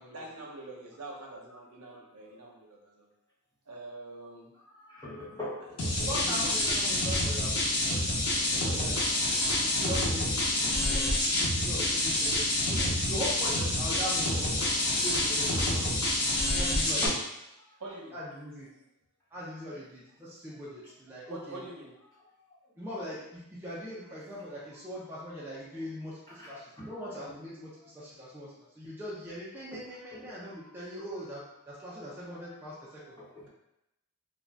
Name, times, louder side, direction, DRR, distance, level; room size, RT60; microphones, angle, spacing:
voice 1, 0.1-3.1 3.7-4.5 5.3-5.5 6.0-6.5 17.8-18.2 21.3-21.9, right 2 dB, 80° right, -2 dB, 0.7 m, -44 dB
voice 2, 4.9-6.1 8.7-8.9 16.0-16.1 17.0-17.2 26.4-26.5 26.8-26.9 29.7-29.8 33.2-33.5, left 1 dB, 15° left, -8 dB, 0.9 m, -40 dB
sound 1, 5.8-17.1, left 1 dB, 85° left, 0.9 m, -28 dB
voice 3, 5.8-9.1 9.4-11.1 11.4-15.9 16.6-17.1 18.1-18.7 19.3-21.7 22.8-33.1, equal, 10° right, -8 dB, 0.5 m, -41 dB
2.5 x 2.3 x 3.3 m, 0.86 s
head